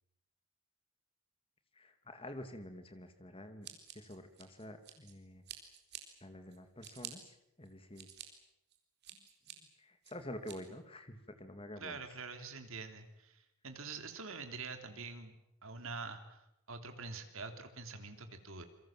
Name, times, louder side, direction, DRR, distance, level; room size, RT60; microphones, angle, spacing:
voice 1, 1.8-3.7 3.9-5.4 6.2-8.1 9.8-12.0, left 1 dB, 25° left, 8 dB, 2.3 m, -48 dB
Scissors, 3.6-5.1 5.5-6.0 6.5-7.1 7.7-8.3 8.7-9.5 10.0-10.6, right 11 dB, 50° right, 4.1 m, -49 dB
voice 2, 11.8-15.4 15.6-18.6, right 4 dB, 65° right, 6 dB, 3.2 m, -46 dB
28.0 x 23.0 x 7.4 m, 0.81 s
head